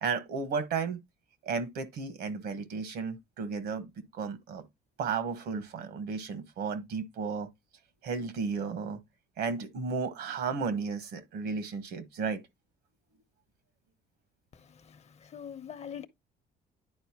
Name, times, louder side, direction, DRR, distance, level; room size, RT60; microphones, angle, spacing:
voice 1, 0.0-1.0 1.4-4.6 5.0-7.5 8.0-9.0 9.4-12.4, right 5 dB, 70° right, 1.3 m, -34 dB
voice 2, 14.5-16.1, left 8 dB, 40° left, 0.8 m, -44 dB
10.0 x 4.4 x 2.9 m
cardioid pair, 110°, 17 cm